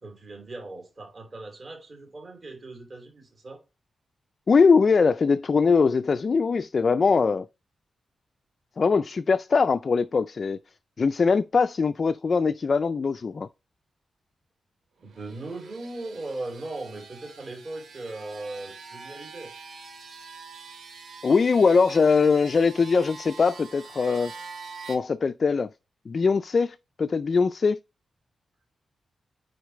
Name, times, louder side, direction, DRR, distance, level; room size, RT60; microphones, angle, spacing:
voice 1, 0.0-3.6 15.0-19.5, right 2 dB, 35° right, 3.0 m, -38 dB
voice 2, 4.5-7.5 8.8-10.6 11.0-13.5 21.2-24.3 24.9-25.7 26.1-27.8, left 5 dB, 35° left, 0.3 m, -22 dB
sound 1, 15.0-25.0, right 4 dB, 80° right, 2.6 m, -45 dB
9.4 x 3.9 x 3.1 m
wide cardioid pair, 180°, 0 cm